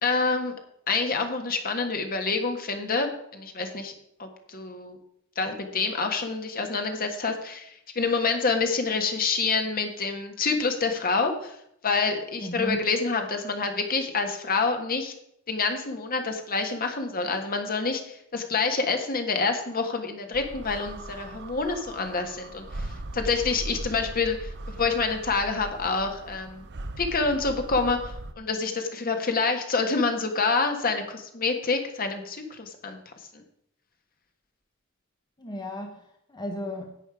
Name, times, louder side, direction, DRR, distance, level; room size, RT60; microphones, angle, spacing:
voice 1, 0.0-0.5 0.9-3.9 4.2-5.0 5.3-11.5 11.8-15.1 15.5-24.5 24.8-26.7 27.0-33.0, left 4 dB, 45° left, 5 dB, 1.6 m, -27 dB
voice 2, 12.4-12.8 35.4-37.0, equal, 20° left, 2 dB, 1.0 m, -35 dB
sound 1, 20.3-28.3, right 1 dB, 55° right, 0.8 m, -39 dB
11.0 x 8.7 x 4.9 m, 0.74 s
head